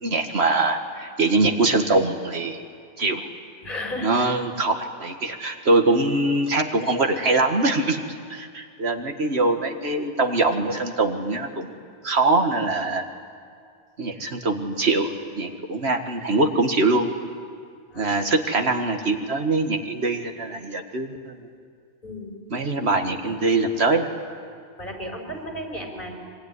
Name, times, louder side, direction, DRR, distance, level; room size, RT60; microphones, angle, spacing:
voice 1, 0.0-2.6 3.0-3.3 4.0-8.0 8.3-11.7 12.0-13.1 14.0-17.1 18.0-21.4 22.5-24.1, right 2 dB, 85° right, 5 dB, 2.1 m, -23 dB
voice 2, 3.6-4.1 17.9-18.1 22.0-22.3 24.8-26.2, left 1 dB, 55° left, 2 dB, 5.1 m, -33 dB
25.5 x 24.0 x 9.7 m, 2.2 s
omnidirectional pair, 1.1 m